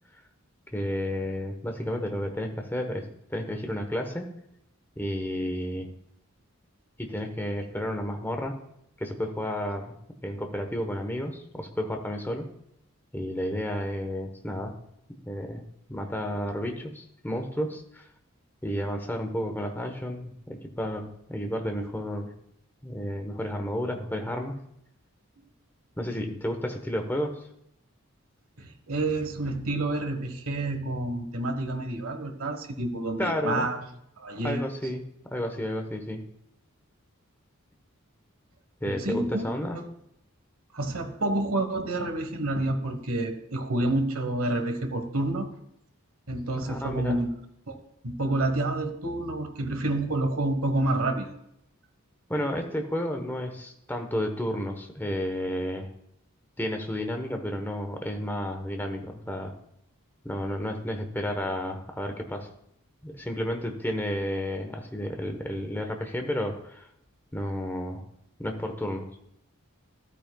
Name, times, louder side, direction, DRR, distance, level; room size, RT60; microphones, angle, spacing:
voice 1, 0.7-4.3 5.0-5.9 7.0-8.6 9.0-9.9 10.2-12.5 13.1-14.7 15.2-15.6 15.9-18.1 18.6-22.3 22.8-24.6 26.0-27.5 33.2-33.7 34.4-36.2 38.8-39.8 46.5-47.2 52.3-55.9 56.6-59.5 60.2-62.5 63.0-66.9 67.3-68.1 68.4-69.1, equal, 10° left, 4 dB, 1.1 m, -32 dB
voice 2, 28.6-33.8 34.2-34.6 38.9-39.9 40.7-45.5 46.3-47.3 47.7-47.8 48.0-51.3, right 2 dB, 75° right, 7 dB, 1.3 m, -29 dB
13.5 x 9.0 x 2.3 m, 0.76 s
head